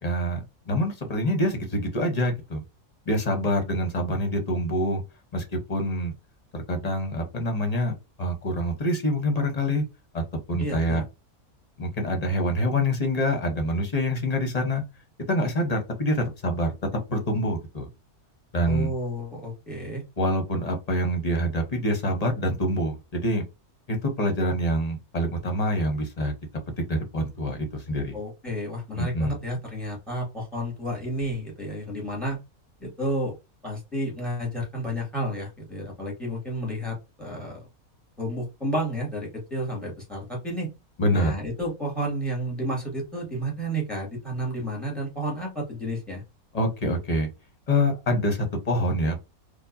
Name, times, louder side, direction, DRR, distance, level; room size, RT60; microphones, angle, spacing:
voice 1, 0.0-2.6 3.1-5.0 5.3-6.1 6.5-9.8 10.1-11.0 11.8-14.8 15.3-16.7 17.1-17.9 18.5-18.9 20.2-23.4 23.9-26.3 26.8-28.1 29.0-29.4 41.0-41.3 46.5-47.3 47.7-49.2, equal, 30° left, 0.9 m, -26 dB
voice 2, 10.6-11.0 18.6-20.0 28.1-32.4 32.8-33.4 33.6-37.7 38.2-40.7 41.1-46.2, equal, ahead, 2.2 m, -31 dB
4.5 x 2.5 x 2.7 m
omnidirectional pair, 1.5 m